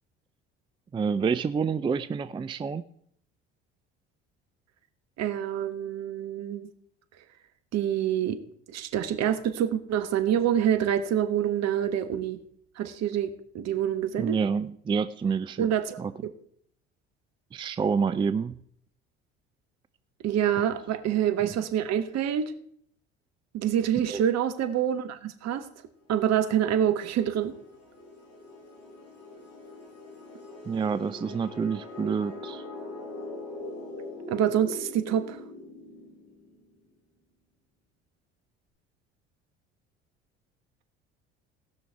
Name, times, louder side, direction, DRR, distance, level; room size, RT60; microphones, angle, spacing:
voice 1, 0.9-2.8 14.2-15.7 16.0-16.1 17.5-18.6 24.1-24.2 30.7-32.6, right 6 dB, 15° right, 14 dB, 0.4 m, -28 dB
voice 2, 5.2-6.7 7.7-8.4 8.7-12.4 12.8-14.4 15.6-16.3 20.2-22.5 23.5-25.7 26.1-27.5 34.3-35.4, right 10 dB, 50° right, 10 dB, 1.3 m, -26 dB
sound 1, 26.1-36.6, left 2 dB, 50° left, 6.1 m, -42 dB
18.0 x 6.2 x 4.6 m, 0.65 s
hypercardioid pair, 60°, 33 cm